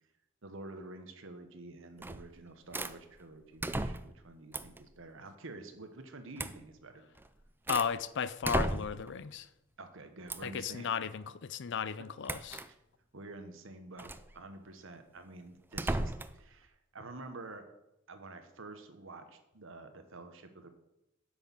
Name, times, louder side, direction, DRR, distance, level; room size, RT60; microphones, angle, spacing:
voice 1, 0.4-7.1 9.8-10.9 13.1-17.7 18.1-20.7, right 2 dB, 70° right, 1.3 m, -49 dB
sound 1, 2.0-2.3 2.7-3.0 3.6-4.2 4.5-4.8 6.4-6.6 7.2-7.9 8.4-9.1 10.3-10.6 12.2-12.7 14.0-14.3 15.7-16.4, right 2 dB, 10° right, 0.4 m, -35 dB
voice 2, 7.7-9.5 10.4-12.6, left 7 dB, 60° left, 0.5 m, -35 dB
8.0 x 6.3 x 7.1 m
head